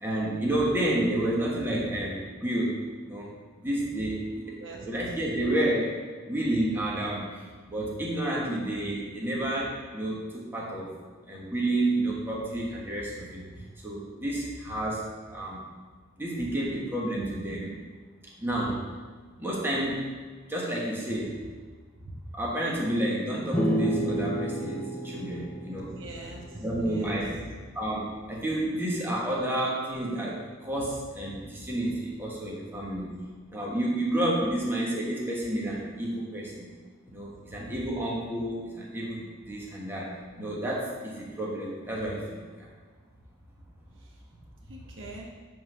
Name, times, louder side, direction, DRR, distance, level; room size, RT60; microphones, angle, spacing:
voice 1, 0.0-2.7 3.1-3.3 3.6-4.5 4.8-5.9 6.3-7.3 7.7-10.9 11.3-13.4 13.8-15.0 15.3-15.6 16.2-17.7 18.4-18.8 19.4-20.1 20.5-21.4 22.3-25.9 26.6-27.3 27.7-33.1 33.5-36.7 37.1-42.2 42.6-42.7, right 1 dB, 10° right, -5 dB, 1.3 m, -30 dB
sound 1, 23.5-27.1, right 1 dB, 5° left, 0.7 m, -30 dB
voice 2, 25.9-27.4 44.7-45.3, right 2 dB, 65° right, -2 dB, 1.2 m, -42 dB
8.4 x 3.9 x 6.1 m, 1.5 s
head